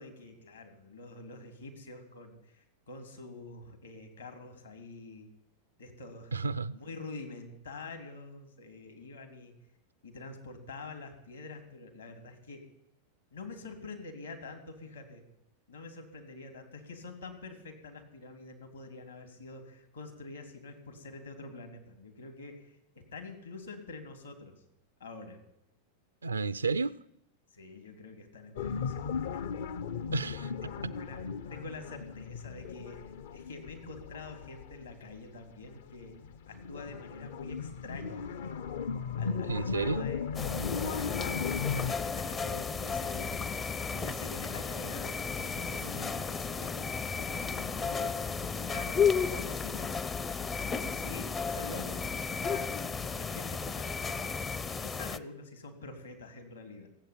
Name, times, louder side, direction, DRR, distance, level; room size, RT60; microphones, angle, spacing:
voice 1, 0.0-5.3 5.8-6.4 6.7-9.5 10.0-12.6 13.3-15.2 15.7-24.5 25.0-25.4 27.5-29.5 30.3-31.2 31.5-36.1 36.5-38.3 39.2-40.2 40.7-48.1 48.7-49.0 49.3-49.9 50.7-52.1 52.4-54.3 54.8-56.9, left 3 dB, 75° left, 3.3 m, -46 dB
voice 2, 6.3-6.8 26.2-27.0 30.1-30.5 39.5-40.1, right 4 dB, 75° right, 0.4 m, -31 dB
sound 1, 28.6-35.1 35.6-41.9, left 6 dB, 60° left, 0.6 m, -37 dB
sound 2, 40.3-55.2, left 5 dB, 20° left, 0.5 m, -33 dB
16.0 x 8.1 x 8.7 m
figure-of-eight pair, 90°, 0 cm